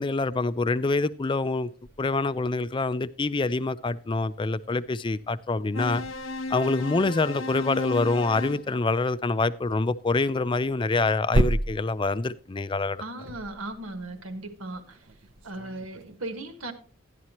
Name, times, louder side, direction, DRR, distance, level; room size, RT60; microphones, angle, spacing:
voice 1, 0.0-1.7 2.0-6.0 6.5-13.0, left 3 dB, 25° left, 0.4 m, -26 dB
sound 1, 1.8-2.8 5.5-9.2 10.3-16.2, right 1 dB, 60° right, 0.6 m, -34 dB
sound 2, 5.7-8.7, left 2 dB, 75° left, 0.8 m, -34 dB
voice 2, 13.0-15.0 15.4-16.7, right 2 dB, 85° right, 1.5 m, -37 dB
12.5 x 10.5 x 3.0 m
head